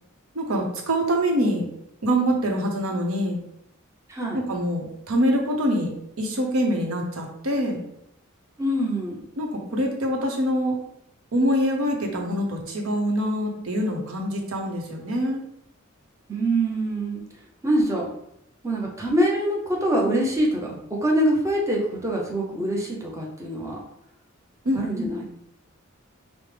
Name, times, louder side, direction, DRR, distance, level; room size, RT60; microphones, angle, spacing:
voice 1, 0.3-1.7 2.0-3.4 4.3-5.9 6.2-7.8 9.4-10.8 11.3-15.4 24.6-25.1, equal, 90° right, 2 dB, 0.8 m, -24 dB
voice 2, 4.1-4.4 8.6-9.2 16.3-17.2 17.6-18.1 18.6-23.8 24.7-25.3, right 1 dB, 15° right, -2 dB, 0.6 m, -24 dB
4.8 x 2.1 x 3.3 m, 0.77 s
head